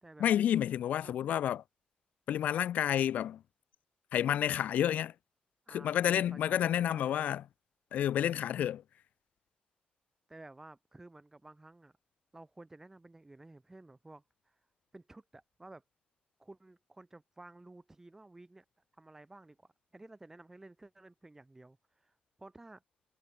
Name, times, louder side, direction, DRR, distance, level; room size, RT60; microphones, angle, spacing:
voice 1, 0.2-1.6 2.3-3.4 4.1-5.1 5.7-7.4 7.9-8.8, left 10 dB, 90° left, 0.6 m, -30 dB
voice 2, 5.7-7.3 10.3-11.9 12.3-14.6 14.9-15.8 16.4-18.7 18.9-22.8, right 2 dB, 15° right, 1.9 m, -53 dB
cardioid pair, 95°, 3 cm